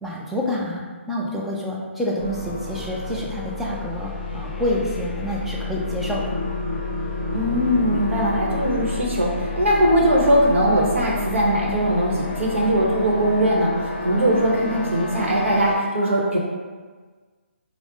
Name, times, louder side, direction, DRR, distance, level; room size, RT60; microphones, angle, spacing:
voice 1, 0.0-6.4, left 1 dB, 5° right, -5 dB, 0.3 m, -28 dB
sound 1, 2.2-15.8, left 3 dB, 40° left, 0.6 m, -29 dB
voice 2, 7.3-16.4, equal, 70° right, -2 dB, 1.0 m, -20 dB
3.5 x 2.1 x 3.6 m, 1.4 s
hypercardioid pair, 150°, 7 cm